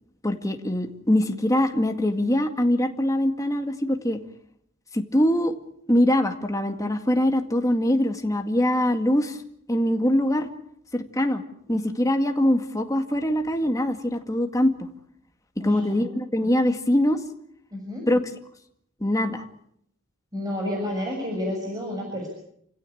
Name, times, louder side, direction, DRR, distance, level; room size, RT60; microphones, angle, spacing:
voice 1, 0.2-4.2 4.9-5.5 5.9-9.4 9.7-10.5 10.9-11.4 11.7-14.9 15.6-17.2 18.1-18.2 19.0-19.4, left 1 dB, 15° left, 5 dB, 2.0 m, -23 dB
voice 2, 17.7-18.0 20.3-22.3, left 1 dB, 20° right, -1 dB, 6.8 m, -29 dB
29.0 x 16.5 x 8.7 m, 0.73 s
head